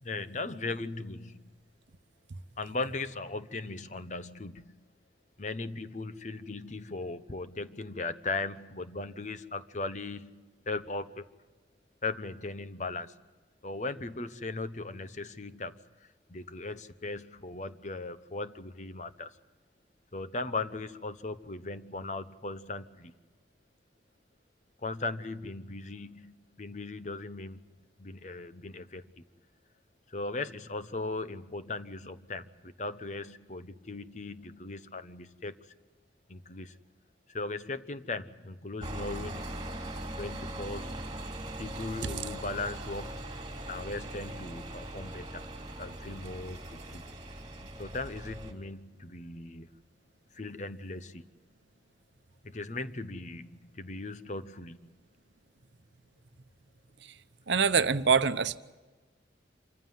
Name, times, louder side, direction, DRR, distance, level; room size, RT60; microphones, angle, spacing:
voice 1, 0.0-1.4 2.6-4.7 5.4-11.3 12.0-13.2 13.6-15.8 16.3-19.3 20.1-23.1 24.8-27.6 28.0-29.1 30.1-35.6 36.3-36.8 37.3-39.5 40.2-41.0 41.6-45.5 45.8-47.1 47.8-49.7 50.3-51.2 52.4-54.8, left 3 dB, 40° left, 0.9 m, -38 dB
sound 1, 38.8-48.5, right 1 dB, 25° right, 3.2 m, -40 dB
voice 2, 57.5-58.6, right 5 dB, 75° right, 0.9 m, -24 dB
26.5 x 15.0 x 9.2 m
head